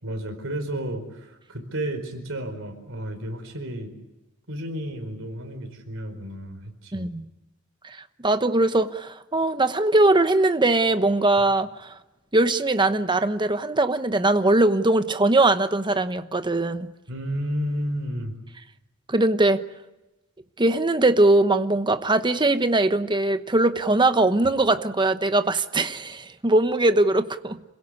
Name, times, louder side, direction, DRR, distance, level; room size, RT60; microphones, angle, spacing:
voice 1, 0.0-3.9 4.5-7.1 17.1-18.3, equal, 65° right, 6 dB, 4.6 m, -32 dB
voice 2, 6.9-7.3 7.8-8.0 8.2-11.9 12.3-16.9 19.1-19.6 20.6-27.6, right 2 dB, 20° right, 10 dB, 1.0 m, -21 dB
27.5 x 17.0 x 9.7 m, 1.0 s
head